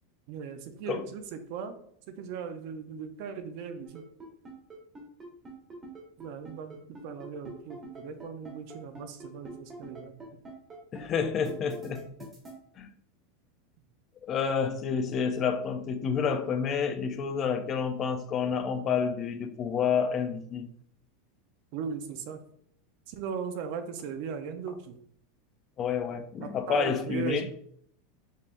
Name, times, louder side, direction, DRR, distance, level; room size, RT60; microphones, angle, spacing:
voice 1, 0.3-1.8 2.1-4.0 6.2-6.8 7.0-10.2 21.7-22.4 23.1-24.9 26.4-27.4, right 6 dB, 55° right, 0.6 m, -38 dB
sound 1, 3.8-12.5, right 2 dB, 20° right, 1.2 m, -44 dB
voice 2, 10.9-12.3 12.8-12.9 14.2-20.7 25.8-27.5, left 6 dB, 30° left, 0.4 m, -29 dB
5.5 x 3.3 x 2.5 m
supercardioid pair, 155°, 0 cm